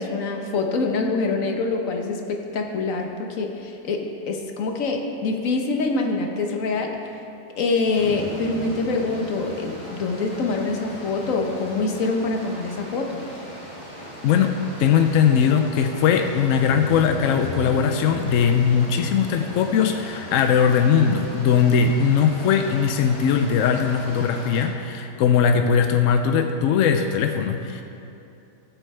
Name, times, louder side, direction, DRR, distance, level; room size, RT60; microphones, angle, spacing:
voice 1, 0.0-7.2 7.6-13.2, left 3 dB, 55° left, 2 dB, 1.3 m, -25 dB
sound 1, 7.9-24.7, equal, 25° left, 2.1 m, -37 dB
voice 2, 14.2-14.5 14.8-27.8, left 7 dB, 70° left, 6 dB, 0.7 m, -20 dB
17.0 x 7.9 x 3.3 m, 2.8 s
omnidirectional pair, 1.8 m